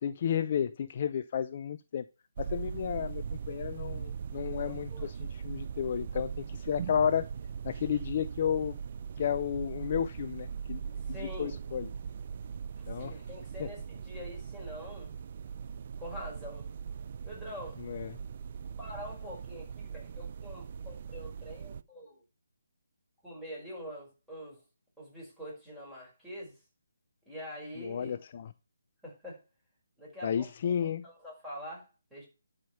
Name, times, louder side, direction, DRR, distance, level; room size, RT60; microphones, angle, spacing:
voice 1, 0.0-2.0 2.4-5.1 5.4-7.3 7.6-8.8 9.2-10.8 11.2-11.9 12.9-13.1 13.6-13.7 17.8-18.1 27.8-28.5 30.2-31.1, left 8 dB, 35° left, 0.5 m, -32 dB
sound 1, 2.4-21.8, right 7 dB, 40° right, 0.5 m, -40 dB
voice 2, 4.6-5.1 11.1-11.6 13.0-15.1 16.0-16.7 17.2-17.8 18.8-22.2 23.2-24.6 25.0-26.5 27.3-28.1 29.0-29.4 30.0-32.3, equal, 5° right, 5.4 m, -45 dB
11.5 x 5.2 x 5.7 m
figure-of-eight pair, 150°, 0 cm